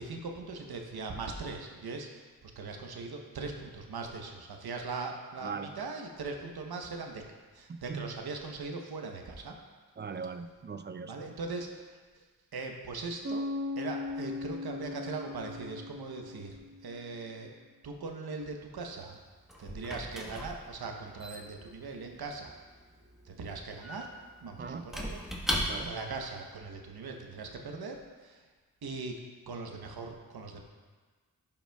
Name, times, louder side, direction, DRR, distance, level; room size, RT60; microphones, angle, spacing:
voice 1, 0.0-7.3 7.5-9.6 11.0-12.2 12.5-13.5 13.8-17.5 17.8-19.2 19.6-22.5 23.2-24.1 24.4-28.4 28.8-30.7, right 3 dB, 80° right, 3 dB, 0.9 m, -40 dB
voice 2, 7.7-8.1 10.0-11.1 24.6-24.8 25.7-25.9, right 5 dB, 30° right, 10 dB, 0.4 m, -39 dB
Bass guitar, 13.2-16.9, left 2 dB, 45° right, 1.6 m, -38 dB
Squeak / Wood, 19.0-26.1, equal, ahead, 1.2 m, -39 dB
11.5 x 5.4 x 2.3 m, 1.4 s
cardioid pair, 55°, 37 cm